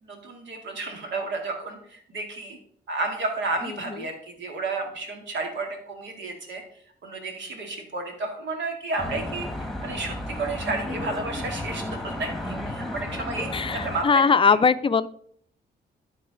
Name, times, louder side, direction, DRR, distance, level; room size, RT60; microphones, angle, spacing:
voice 1, 0.0-2.6 2.9-6.6 7.0-14.6, right 3 dB, 80° right, 3 dB, 2.2 m, -32 dB
Traffic noise roadway noise, 9.0-14.0, left 1 dB, ahead, 1.3 m, -33 dB
voice 2, 13.5-15.1, left 5 dB, 30° left, 14 dB, 0.5 m, -20 dB
12.0 x 4.0 x 5.1 m, 0.62 s
cardioid pair, 85°, 19 cm